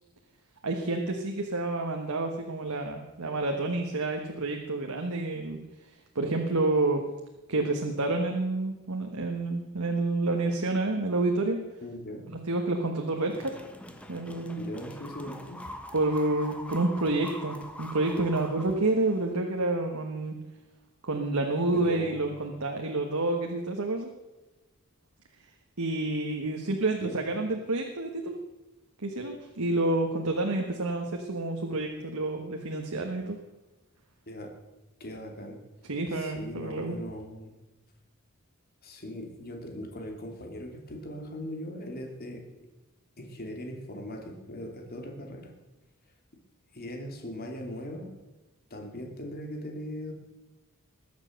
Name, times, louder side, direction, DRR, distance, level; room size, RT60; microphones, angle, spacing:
voice 1, 0.6-5.6 6.1-7.1 7.5-11.6 12.3-13.5 14.1-14.7 15.9-20.4 21.0-24.1 25.8-28.4 29.0-33.4 35.9-37.0, right 2 dB, 80° right, 3 dB, 1.4 m, -29 dB
voice 2, 11.8-12.3 14.5-15.6 21.7-22.4 27.0-27.2 34.3-34.5 35.0-35.6 36.1-37.5 38.8-42.5 43.2-45.5 46.7-48.1 48.7-50.1, left 1 dB, 45° left, 2 dB, 2.8 m, -39 dB
sound 1, 13.3-19.3, left 1 dB, 5° left, 1.2 m, -44 dB
21.0 x 7.5 x 6.5 m, 1.1 s
head